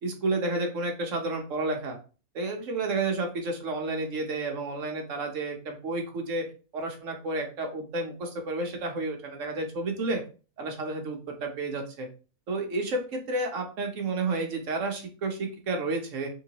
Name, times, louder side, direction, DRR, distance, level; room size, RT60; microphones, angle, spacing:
voice 1, 0.0-2.0 2.3-6.4 6.7-10.2 10.6-12.1 12.5-16.3, right 2 dB, 55° right, 2 dB, 1.3 m, -31 dB
3.8 x 3.7 x 2.9 m, 0.36 s
omnidirectional pair, 1.7 m